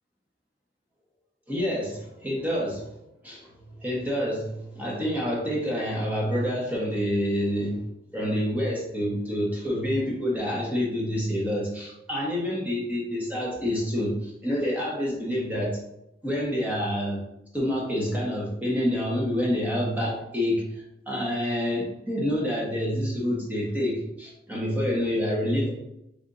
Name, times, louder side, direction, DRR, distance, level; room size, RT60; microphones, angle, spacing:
voice 1, 1.5-2.9 3.2-7.8 8.1-15.8 16.2-17.2 17.5-25.7, equal, 10° right, -4 dB, 1.1 m, -27 dB
5.1 x 3.5 x 2.6 m, 0.84 s
head